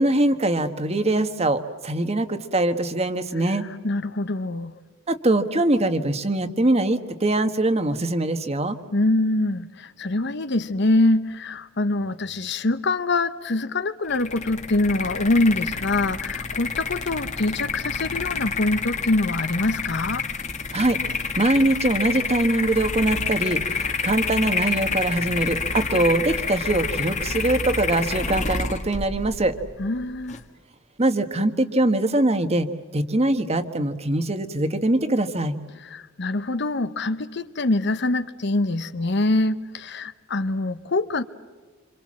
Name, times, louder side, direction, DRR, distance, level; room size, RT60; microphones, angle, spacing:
voice 1, 0.0-3.6 5.1-8.8 20.7-21.0 21.4-29.5 31.0-32.7 32.9-35.5, right 1 dB, 30° right, 1.4 m, -22 dB
voice 2, 3.6-4.7 8.9-20.3 29.8-30.4 35.8-41.2, left 2 dB, 60° left, 1.0 m, -24 dB
sound 1, 14.1-30.4, left 4 dB, 35° left, 1.6 m, -28 dB
27.0 x 26.5 x 7.5 m
head